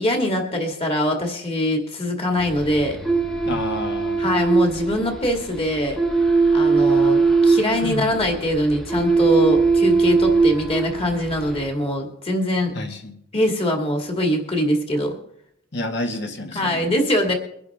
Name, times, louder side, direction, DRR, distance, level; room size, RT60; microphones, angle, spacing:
voice 1, 0.0-3.0 4.2-6.0 6.5-12.7 13.3-15.1 16.5-17.3, left 1 dB, 30° left, 2 dB, 2.2 m, -23 dB
sound 1, 2.4-11.7, right 4 dB, ahead, 1.0 m, -21 dB
voice 2, 3.4-4.2 7.8-8.3 12.7-13.2 15.7-16.9, left 1 dB, 60° left, 4 dB, 1.7 m, -29 dB
23.0 x 10.5 x 3.6 m, 0.74 s
head